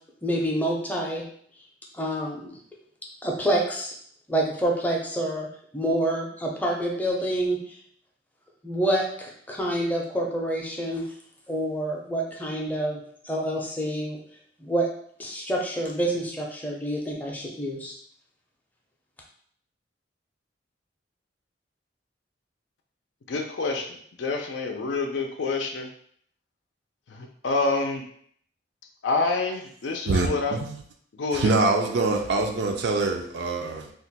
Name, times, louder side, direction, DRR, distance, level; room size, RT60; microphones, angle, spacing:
voice 1, 0.2-1.2 1.9-2.5 3.2-3.9 4.3-5.5 5.7-7.8 8.6-11.0 11.5-14.2 14.6-14.9 15.2-17.9, right 1 dB, 10° left, -2 dB, 0.5 m, -27 dB
voice 2, 23.3-25.9 27.1-28.0 29.0-30.6 31.1-31.5, left 3 dB, 85° left, 3 dB, 0.4 m, -27 dB
voice 3, 30.1-30.8 31.3-33.9, right 3 dB, 70° right, 3 dB, 0.4 m, -24 dB
2.4 x 2.1 x 3.9 m, 0.62 s
head